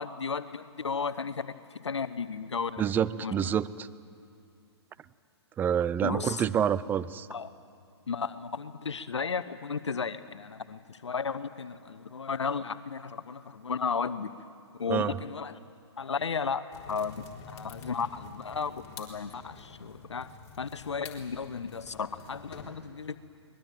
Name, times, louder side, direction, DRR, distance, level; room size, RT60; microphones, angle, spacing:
voice 1, 0.0-2.8 3.2-3.5 6.0-6.4 7.3-7.5 8.1-14.3 14.8-15.6 16.0-23.2, left 5 dB, 85° left, 12 dB, 1.0 m, -34 dB
voice 2, 2.8-3.9 5.6-7.3 14.9-15.2, right 8 dB, 15° right, 17 dB, 0.5 m, -27 dB
sound 1, 16.7-22.6, left 5 dB, 35° left, 4.0 m, -48 dB
24.5 x 20.5 x 9.3 m, 2.4 s
hypercardioid pair, 130°, 14 cm